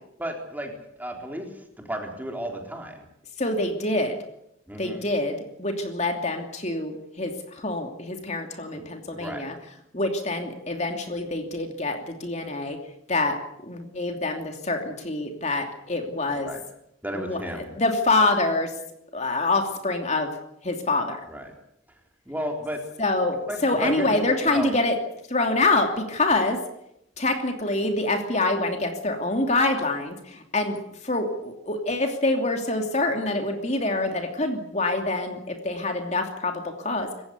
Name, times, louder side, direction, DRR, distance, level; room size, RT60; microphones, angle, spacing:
voice 1, 0.2-0.7 1.0-1.5 1.9-3.0 4.7-5.1 8.8-8.9 9.1-9.5 16.3-16.6 17.0-17.7 21.3-21.5 22.3-22.8 23.5-24.7, equal, 10° right, 2 dB, 3.9 m, -33 dB
voice 2, 3.4-4.2 4.8-9.5 9.9-12.8 13.1-13.4 13.7-16.5 17.1-17.4 17.7-18.7 19.1-20.3 20.6-21.2 23.0-25.0 25.3-26.6 27.2-30.8 31.0-37.1, left 2 dB, 35° left, 4 dB, 2.8 m, -26 dB
27.5 x 15.5 x 8.3 m, 0.78 s
head